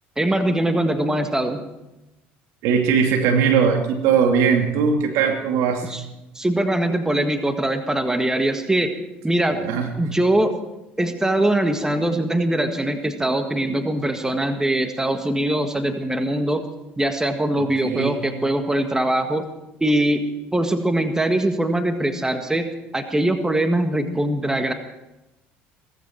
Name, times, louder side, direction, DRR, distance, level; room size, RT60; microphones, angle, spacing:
voice 1, 0.2-1.6 5.9-6.0 6.3-8.9 9.2-9.6 10.0-10.6 11.0-16.6 17.0-19.5 19.8-20.2 20.5-22.7 22.9-24.7, right 1 dB, 10° right, 7 dB, 1.7 m, -22 dB
voice 2, 2.6-5.8 9.5-9.9 17.6-18.1, right 6 dB, 70° right, 3 dB, 2.5 m, -20 dB
17.0 x 15.0 x 4.6 m, 0.96 s
hypercardioid pair, 70°, 5 cm